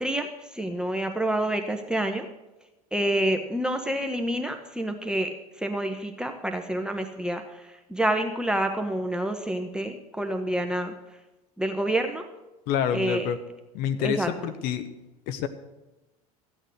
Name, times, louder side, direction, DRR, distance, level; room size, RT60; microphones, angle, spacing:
voice 1, 0.0-2.3 2.9-10.9 11.6-12.3 12.9-13.3 14.0-14.3, right 1 dB, 5° right, 5 dB, 1.1 m, -28 dB
voice 2, 12.7-13.4 13.7-14.9 15.3-15.5, left 8 dB, 55° left, 10 dB, 1.0 m, -27 dB
14.5 x 8.9 x 6.5 m, 1.0 s
figure-of-eight pair, 75°, 19 cm